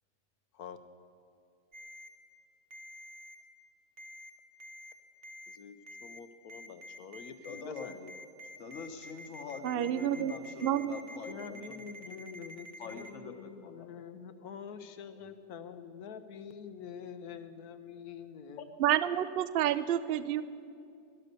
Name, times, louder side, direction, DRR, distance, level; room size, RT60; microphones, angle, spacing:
Ringtone, 1.7-2.1 2.7-3.4 4.0-4.3 4.6-4.9 5.2-5.6 5.9-6.2 6.5-13.1, equal, 50° right, 1.3 m, -48 dB
voice 1, 6.0-8.1 11.3-18.7, left 7 dB, 80° left, 10 dB, 1.4 m, -46 dB
voice 2, 7.4-7.9 8.6-11.8 12.8-13.9 18.6-18.7, left 5 dB, 55° left, 6 dB, 1.4 m, -44 dB
voice 3, 9.6-10.3 10.6-11.0 18.8-20.4, right 11 dB, 65° right, 14 dB, 0.5 m, -29 dB
17.0 x 12.0 x 6.8 m, 2.5 s
omnidirectional pair, 1.6 m